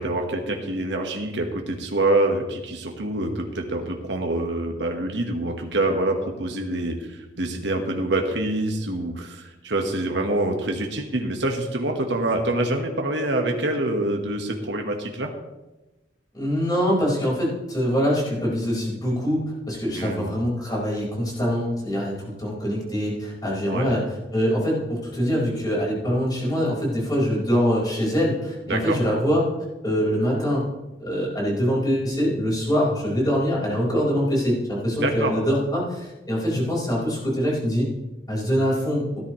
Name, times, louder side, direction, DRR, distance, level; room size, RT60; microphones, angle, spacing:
voice 1, 0.0-15.3 19.9-20.4 23.7-23.9 28.7-29.0 35.0-35.4, right 2 dB, 75° right, 2 dB, 1.5 m, -26 dB
voice 2, 16.3-29.4 29.8-30.6 31.0-37.9 38.3-39.1, equal, 25° left, -4 dB, 4.9 m, -24 dB
17.0 x 10.5 x 3.2 m, 1.0 s
head